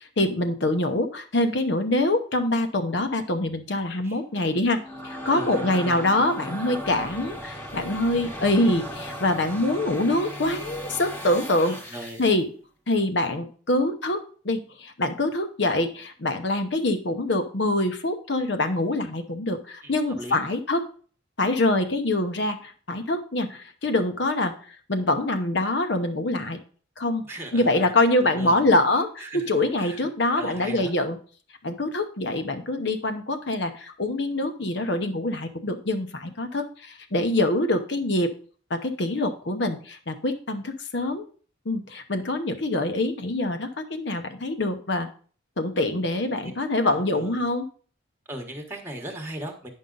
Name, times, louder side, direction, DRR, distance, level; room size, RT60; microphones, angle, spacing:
voice 1, 0.2-12.5 12.9-20.9 21.4-26.6 27.0-27.2 27.5-31.2 31.6-38.3 38.7-41.3 41.6-45.1 45.6-47.6, left 2 dB, 55° left, 7 dB, 0.9 m, -25 dB
sound 1, 4.6-12.3, equal, 10° left, 1.1 m, -37 dB
voice 2, 5.3-6.0 11.7-12.2 19.8-20.4 27.3-27.9 28.2-28.6 29.2-29.5 29.8-30.1 30.4-30.9 46.8-47.4 48.3-49.7, right 1 dB, 10° right, 3 dB, 1.2 m, -38 dB
9.7 x 5.5 x 3.8 m, 0.42 s
head